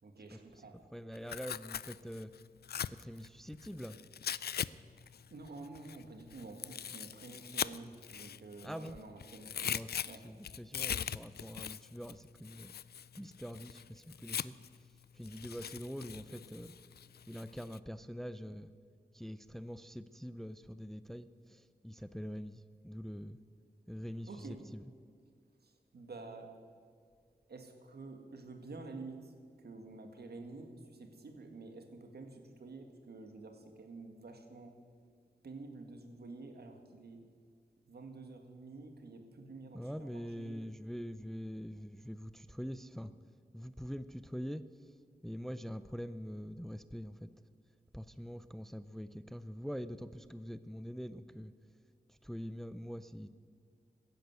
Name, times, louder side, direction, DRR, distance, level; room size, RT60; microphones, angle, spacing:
voice 1, 0.0-0.8 5.3-9.7 10.1-10.2 24.3-24.6 25.6-26.5 27.5-29.3 29.6-34.7 35.4-37.2 37.9-40.7, right 3 dB, 75° right, 4 dB, 2.0 m, -49 dB
voice 2, 0.9-2.3 2.9-4.0 8.6-9.0 9.6-9.9 10.2-12.7 13.2-14.6 15.1-16.7 17.3-18.7 19.1-23.4 23.9-24.8 39.7-43.1 43.5-44.6 45.2-47.3 47.9-51.5 52.1-53.3, equal, ahead, 13 dB, 0.5 m, -44 dB
Tearing, 1.1-4.7 5.0-8.9 9.2-14.8 15.2-17.8, left 8 dB, 75° left, 0.4 m, -41 dB
15.5 x 10.5 x 8.1 m, 2.1 s
wide cardioid pair, 80°, 17 cm